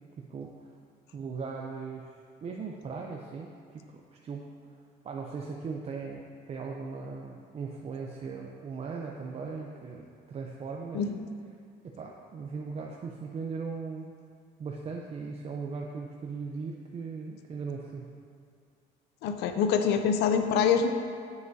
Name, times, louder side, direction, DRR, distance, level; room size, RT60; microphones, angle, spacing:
voice 1, 0.2-0.7 1.1-3.9 4.2-4.5 5.0-11.0 11.8-14.1 14.6-18.1, right 5 dB, 40° right, 0 dB, 0.6 m, -38 dB
voice 2, 10.9-11.3 19.2-20.9, left 6 dB, 85° left, 7 dB, 0.5 m, -25 dB
9.6 x 7.0 x 2.7 m, 2.3 s
cardioid pair, 110°, 17 cm